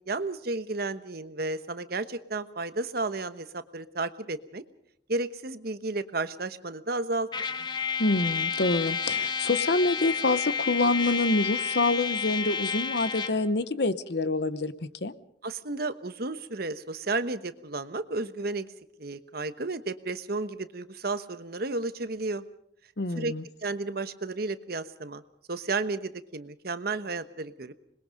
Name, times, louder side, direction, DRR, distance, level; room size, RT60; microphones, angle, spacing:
voice 1, 0.1-4.6 5.1-7.3 15.4-18.7 19.0-22.4 23.1-23.3 23.6-25.2 25.5-27.7, right 3 dB, 55° right, 12 dB, 1.1 m, -32 dB
Trumpet, 7.3-13.4, left 6 dB, 25° left, 1.1 m, -30 dB
voice 2, 8.0-14.7 15.0-15.1 23.0-23.4, left 2 dB, 65° left, 14 dB, 1.0 m, -26 dB
26.0 x 21.5 x 5.2 m, 0.73 s
head